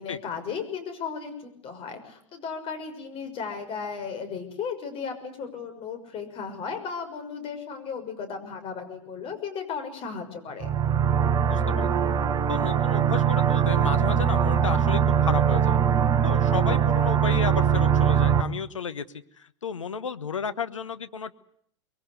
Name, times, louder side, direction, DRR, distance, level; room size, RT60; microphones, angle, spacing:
voice 1, 0.0-10.7, left 6 dB, 35° left, 6 dB, 6.4 m, -35 dB
sound 1, 10.6-18.4, right 8 dB, 25° right, 1.3 m, -22 dB
voice 2, 11.5-12.0 12.5-15.8 16.2-19.1 19.4-21.3, left 6 dB, 80° left, 10 dB, 1.4 m, -33 dB
24.5 x 22.5 x 8.0 m, 0.64 s
figure-of-eight pair, 90°, 16 cm